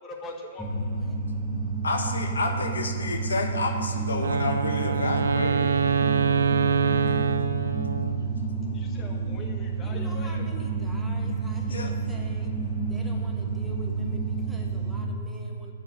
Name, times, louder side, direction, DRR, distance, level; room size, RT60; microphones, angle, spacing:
voice 1, 0.0-0.7 8.7-10.5, left 2 dB, 25° left, 1 dB, 1.6 m, -42 dB
sound 1, 0.6-14.9, right 4 dB, 10° left, 1.6 m, -29 dB
voice 2, 1.8-5.6 11.7-11.9, left 3 dB, 75° left, 4 dB, 1.1 m, -30 dB
Wind instrument woodwind instrument, 4.2-8.3, right 6 dB, 70° right, 0.4 m, -25 dB
voice 3, 9.8-12.5 12.9-15.7, equal, 10° right, 0 dB, 1.4 m, -46 dB
7.5 x 6.5 x 8.1 m, 2.3 s
figure-of-eight pair, 120°, 0 cm